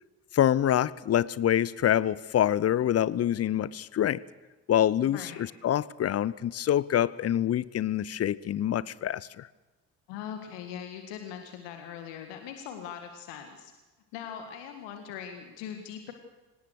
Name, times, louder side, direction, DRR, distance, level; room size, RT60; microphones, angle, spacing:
voice 1, 0.3-4.2 4.7-9.5, left 11 dB, 30° left, 21 dB, 0.7 m, -26 dB
voice 2, 5.0-5.4 10.1-13.7 14.1-16.1, left 8 dB, 60° left, 5 dB, 1.9 m, -41 dB
26.0 x 18.5 x 6.4 m, 1.2 s
figure-of-eight pair, 45°, 47 cm